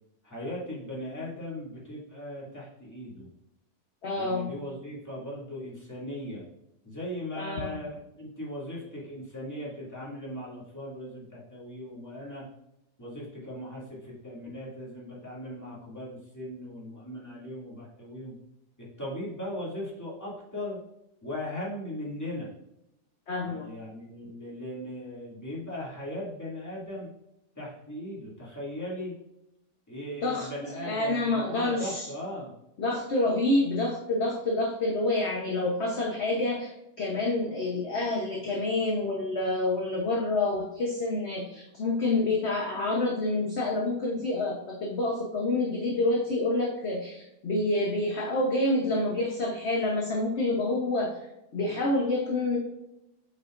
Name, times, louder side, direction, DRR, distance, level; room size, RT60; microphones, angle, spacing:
voice 1, 0.2-3.3 4.2-6.4 6.8-12.5 13.0-18.4 18.8-20.8 21.2-22.5 23.4-27.1 27.5-29.1 29.9-32.5, left 1 dB, 10° left, -6 dB, 2.4 m, -38 dB
voice 2, 4.0-4.5 7.4-7.8 23.3-23.7 30.2-30.5 30.8-32.1 32.8-51.1 51.5-52.6, left 2 dB, 45° left, -1 dB, 1.1 m, -28 dB
8.2 x 5.5 x 2.5 m, 0.87 s
omnidirectional pair, 1.9 m